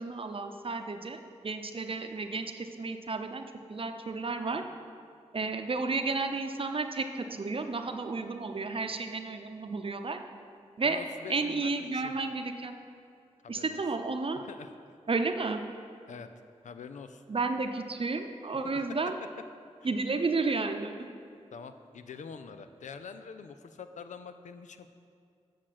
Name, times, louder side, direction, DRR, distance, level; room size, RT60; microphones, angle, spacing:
voice 1, 0.0-3.4 3.7-4.6 5.3-10.2 10.8-11.0 11.3-12.7 13.5-14.4 15.1-15.6 17.3-19.2 19.8-21.1, right 3 dB, 50° right, 6 dB, 0.7 m, -32 dB
voice 2, 10.8-12.2 13.4-13.8 14.4-15.0 16.1-16.3 16.6-17.2 18.6-19.1 19.8-19.9 21.5-24.9, left 6 dB, 85° left, 10 dB, 0.5 m, -45 dB
8.2 x 6.3 x 5.9 m, 2.4 s
cardioid pair, 55°, 12 cm